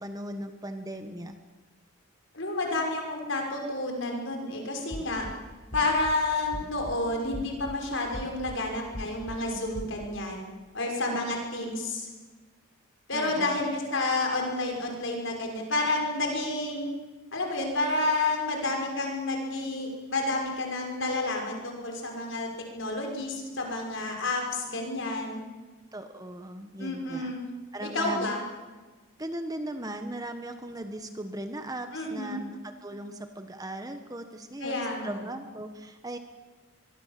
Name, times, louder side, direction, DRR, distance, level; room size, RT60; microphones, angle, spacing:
voice 1, 0.0-1.4 13.1-13.6 25.9-27.3 27.7-28.3 29.2-36.2, right 1 dB, 15° right, 7 dB, 1.4 m, -38 dB
voice 2, 2.3-5.3 5.7-10.4 10.7-12.1 13.1-16.9 17.3-22.5 22.7-25.4 26.8-27.4 27.8-28.5 31.9-32.4 34.6-35.2, left 2 dB, 60° left, 2 dB, 6.0 m, -30 dB
sound 1, 4.9-5.3 5.7-6.1 6.5-6.9 7.3-7.7 8.1-8.6 8.9-9.4 9.7-9.9, equal, 30° left, 2.2 m, -38 dB
24.0 x 23.0 x 7.7 m, 1.3 s
head